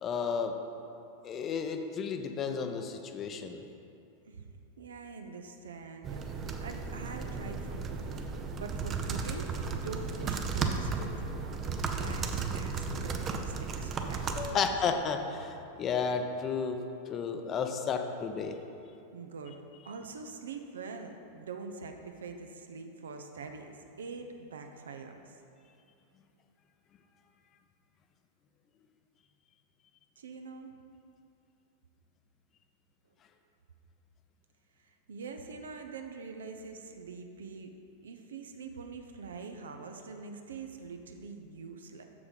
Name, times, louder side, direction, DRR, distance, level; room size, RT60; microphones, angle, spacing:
voice 1, 0.0-0.5 1.2-3.6 14.4-16.8 17.1-18.6, left 6 dB, 30° left, 6 dB, 0.6 m, -32 dB
voice 2, 4.8-14.8 19.1-19.6 19.8-25.4 30.2-30.8 34.8-37.7 38.0-42.0, right 4 dB, 65° right, 5 dB, 0.6 m, -44 dB
sound 1, 6.0-14.5, right 4 dB, 25° right, 0.6 m, -34 dB
6.9 x 6.7 x 5.1 m, 2.6 s
figure-of-eight pair, 90°, 0 cm